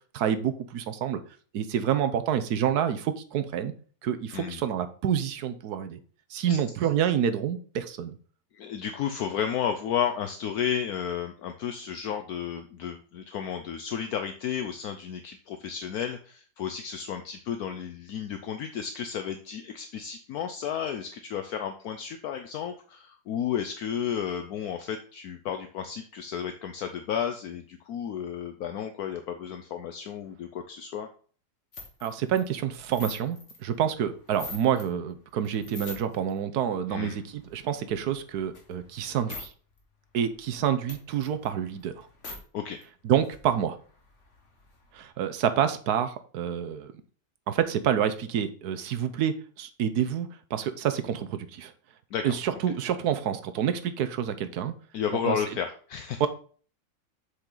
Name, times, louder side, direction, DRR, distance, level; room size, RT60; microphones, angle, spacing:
voice 1, 0.1-1.2 1.5-3.7 4.0-6.0 6.3-8.1 32.0-39.5 40.1-42.1 43.0-43.8 44.9-46.9 47.5-51.7 52.2-54.7 55.1-55.4 56.2-56.3, right 9 dB, 70° right, 10 dB, 1.3 m, -28 dB
voice 2, 4.3-4.6 6.5-6.6 8.5-31.1 36.9-37.2 42.5-42.8 52.1-52.6 54.9-56.2, left 8 dB, 70° left, 7 dB, 1.1 m, -32 dB
sound 1, 31.7-34.9 35.3-36.3 36.7-39.5 39.8-39.9 40.2-42.4 42.8-42.9 43.1-45.1, left 3 dB, 45° left, 1.9 m, -45 dB
7.3 x 6.6 x 3.9 m, 0.42 s
omnidirectional pair, 1.8 m